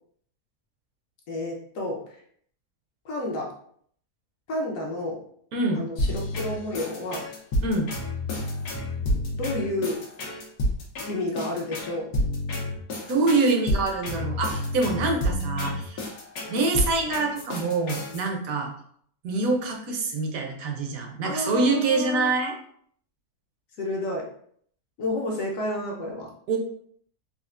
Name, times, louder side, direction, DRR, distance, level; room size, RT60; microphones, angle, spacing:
voice 1, 1.3-2.2 3.0-3.5 4.5-5.2 5.7-7.2 9.3-10.0 11.1-12.1 16.5-16.7 21.2-22.3 23.8-24.3 25.0-26.3, left 1 dB, 65° left, -1 dB, 1.0 m, -30 dB
voice 2, 5.5-5.8 7.6-7.9 13.1-16.0 16.5-18.7 19.2-22.5 26.5-26.6, right 3 dB, 65° right, 2 dB, 1.0 m, -25 dB
sound 1, 6.0-18.2, left 1 dB, 80° left, 1.4 m, -29 dB
4.2 x 2.4 x 2.4 m, 0.63 s
omnidirectional pair, 1.7 m